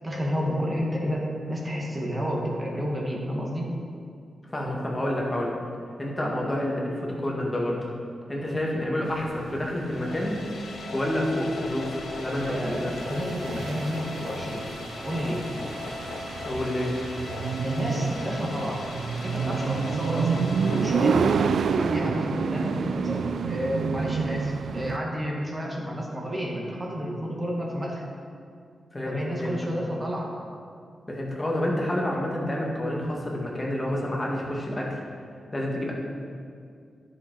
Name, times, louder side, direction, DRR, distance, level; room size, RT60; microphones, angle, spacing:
voice 1, 0.0-3.7 8.4-8.5 12.4-14.7 15.0-15.5 17.6-18.8 19.2-20.4 20.7-21.2 21.7-28.0 29.0-30.3, equal, 25° right, -2 dB, 2.0 m, -30 dB
voice 2, 4.5-5.5 6.0-7.8 8.3-10.4 10.9-12.4 12.8-12.9 16.5-17.0 28.9-29.6 31.1-35.0 35.5-35.9, left 1 dB, 25° left, -2 dB, 2.0 m, -28 dB
sound 1, 9.1-25.0, right 5 dB, 80° right, 0.4 m, -29 dB
sound 2, 9.8-21.7, left 4 dB, 75° left, 0.9 m, -38 dB
10.5 x 7.0 x 4.7 m, 2.3 s
cardioid pair, 60°, 0 cm